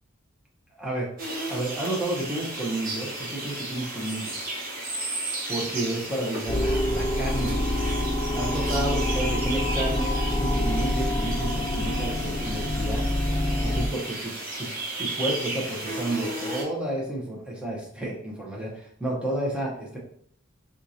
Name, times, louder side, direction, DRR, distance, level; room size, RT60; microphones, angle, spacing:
voice 1, 0.7-1.1 1.4-4.4 5.5-7.6 8.3-13.0 13.6-14.7 15.0-20.0, right 1 dB, 5° right, -4 dB, 0.7 m, -31 dB
sound 1, 1.2-16.6, right 2 dB, 40° right, 1.0 m, -34 dB
sound 2, 6.5-13.9, left 1 dB, 25° left, 0.5 m, -26 dB
4.5 x 2.4 x 2.7 m, 0.67 s
head